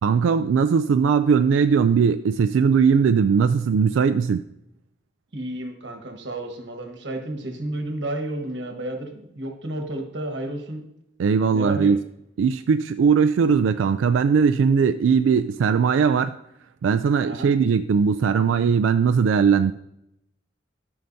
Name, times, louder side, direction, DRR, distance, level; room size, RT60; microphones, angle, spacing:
voice 1, 0.0-4.4 11.2-12.0 12.4-16.3 16.8-19.7, right 6 dB, 90° right, 10 dB, 0.3 m, -19 dB
voice 2, 5.3-10.8 11.5-11.9 17.2-17.5, right 1 dB, 65° right, 3 dB, 1.3 m, -31 dB
12.5 x 5.7 x 2.7 m, 0.79 s
head